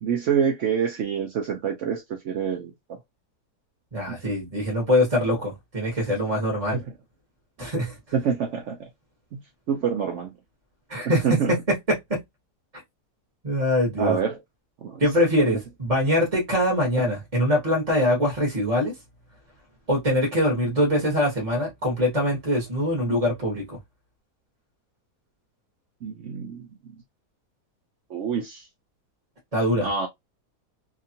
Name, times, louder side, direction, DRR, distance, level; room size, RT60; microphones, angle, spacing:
voice 1, 0.0-3.0 4.1-4.2 6.7-6.9 8.1-8.9 9.3-9.4 9.7-10.3 11.2-11.5 14.0-14.4 14.8-15.0 26.0-26.7 28.1-28.6 29.8-30.1, right 7 dB, 65° right, 0.7 m, -26 dB
voice 2, 3.9-6.8 7.6-8.0 10.9-12.2 13.4-14.2 15.0-18.9 19.9-23.8 29.5-29.9, equal, 25° right, 0.9 m, -23 dB
2.8 x 2.4 x 2.7 m
omnidirectional pair, 1.7 m